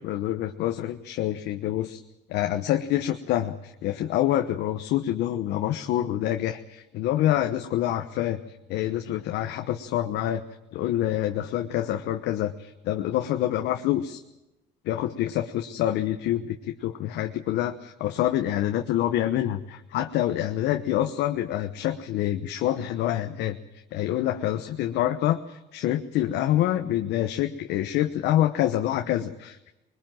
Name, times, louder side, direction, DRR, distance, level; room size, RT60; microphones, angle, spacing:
voice 1, 0.0-2.0 2.3-8.4 8.7-10.4 10.7-14.2 14.9-23.6 23.9-29.7, left 12 dB, 85° left, 6 dB, 1.1 m, -26 dB
22.0 x 21.0 x 7.7 m, 0.95 s
cardioid pair, 85°, 17 cm